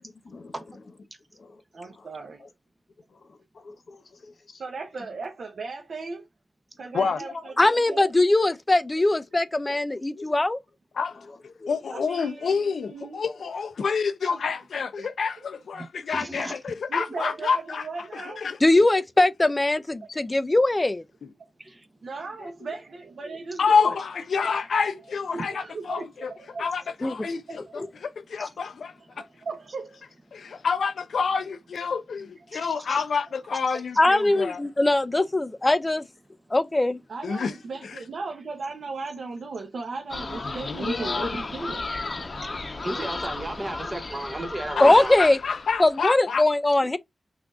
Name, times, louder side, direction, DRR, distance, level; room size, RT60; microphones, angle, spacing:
voice 1, 0.0-0.9 1.3-2.1 2.4-2.5 3.1-4.6 7.1-7.4 9.7-9.8 10.1-10.3 11.1-11.9 13.8-13.9 22.4-22.7, left 3 dB, 65° left, 1.0 m, -46 dB
voice 2, 1.7-2.4 4.6-6.3 6.8-8.1 11.9-13.2 14.3-14.4 15.0-15.1 15.4-15.5 16.9-18.5 20.0-20.1 22.0-24.0 24.4-24.6 25.3-26.1 26.4-26.7 27.2-27.9 29.1-30.0 37.1-41.9 46.8-46.9, right 4 dB, 70° right, 0.8 m, -37 dB
voice 3, 7.6-10.6 18.6-21.0 27.0-27.1 27.8-27.9 34.0-36.0 36.5-37.0 44.8-45.4 45.8-47.0, left 2 dB, 20° left, 0.3 m, -21 dB
voice 4, 11.7-17.8 18.1-18.6 21.2-21.3 23.6-26.3 26.6-28.9 30.3-34.6 37.2-37.5 37.8-38.0 40.6-41.4 44.8-46.4, left 5 dB, 85° left, 0.5 m, -28 dB
voice 5, 15.8-16.5 21.6-21.9 28.4-28.5 32.5-33.0 33.7-33.8 42.4-42.5 42.8-45.2, right 1 dB, 25° right, 0.6 m, -35 dB
sound 1, 40.1-46.0, left 3 dB, 45° left, 0.7 m, -34 dB
5.9 x 2.5 x 2.3 m
wide cardioid pair, 110°, 0 cm